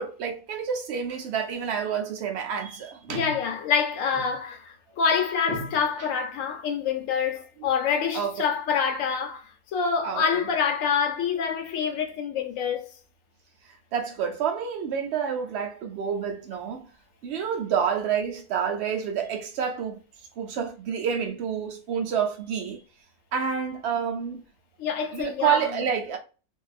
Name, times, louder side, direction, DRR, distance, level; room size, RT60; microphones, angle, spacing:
voice 1, 0.0-3.4 5.5-6.1 8.1-8.4 10.0-10.2 13.9-16.9 17.2-20.0 20.4-22.8 23.3-24.4 25.1-26.2, right 7 dB, 60° right, 0.8 m, -28 dB
voice 2, 3.1-9.4 9.7-12.9 24.8-25.6, left 6 dB, 65° left, 1.0 m, -26 dB
2.6 x 2.3 x 2.4 m
omnidirectional pair, 1.5 m